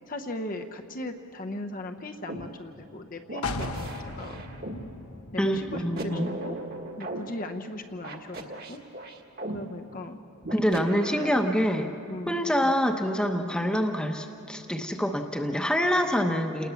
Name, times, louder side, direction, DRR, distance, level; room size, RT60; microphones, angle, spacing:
voice 1, 0.1-4.4 5.3-6.6 7.0-8.8 9.5-10.2 11.2-11.5 11.8-12.3 12.6-12.8, left 1 dB, 40° left, 4 dB, 0.8 m, -38 dB
sound 1, 2.3-2.4 3.3-4.8 5.7-7.2 8.0-9.6 10.4-11.7, right 1 dB, 45° right, 1.6 m, -37 dB
sound 2, 3.4-7.2 7.5-7.6, left 3 dB, 80° left, 1.2 m, -38 dB
voice 2, 5.4-6.4 10.5-11.9 12.3-16.7, equal, 5° left, 4 dB, 1.0 m, -26 dB
28.5 x 19.5 x 7.1 m, 2.8 s
head